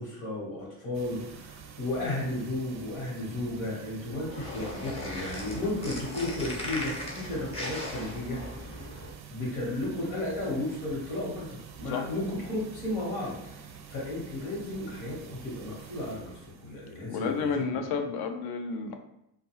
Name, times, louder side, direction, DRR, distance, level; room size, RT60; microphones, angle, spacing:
voice 1, 0.0-8.9 9.3-11.5 11.8-17.7, left 1 dB, 85° left, -4 dB, 1.3 m, -34 dB
sound 1, 0.9-17.6, right 7 dB, 40° right, 0.4 m, -48 dB
sound 2, 4.1-9.1, left 1 dB, 15° left, 0.8 m, -38 dB
voice 2, 17.0-19.0, left 5 dB, 55° left, 6 dB, 0.5 m, -31 dB
2.2 x 2.2 x 3.0 m, 0.82 s
supercardioid pair, 75°, 47 cm